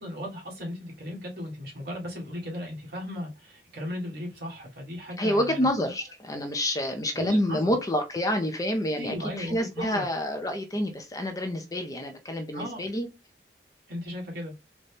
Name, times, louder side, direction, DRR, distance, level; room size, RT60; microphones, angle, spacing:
voice 1, 0.0-5.7 7.1-7.7 8.9-10.0 12.5-12.9 13.9-14.5, left 1 dB, 60° right, 1.6 m, -36 dB
voice 2, 5.2-13.1, left 1 dB, 20° left, 0.5 m, -28 dB
4.0 x 2.2 x 3.3 m
head